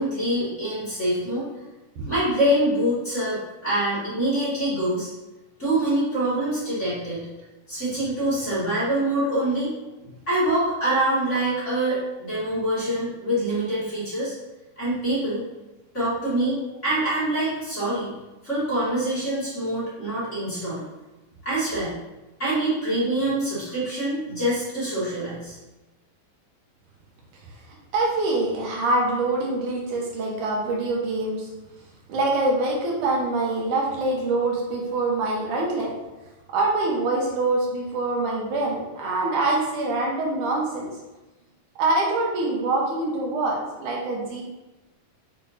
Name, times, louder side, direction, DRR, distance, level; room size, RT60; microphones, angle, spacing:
voice 1, 0.0-1.5 2.1-5.1 5.6-7.2 7.7-9.7 10.3-14.3 14.8-15.4 15.9-18.1 18.4-20.9 21.4-21.9 22.4-25.6, right 1 dB, 25° left, -10 dB, 1.9 m, -25 dB
voice 2, 27.9-31.5 32.1-35.9 36.5-40.9 41.8-44.4, right 2 dB, 70° right, -2 dB, 2.5 m, -25 dB
6.7 x 5.6 x 2.7 m, 1.1 s
omnidirectional pair, 3.9 m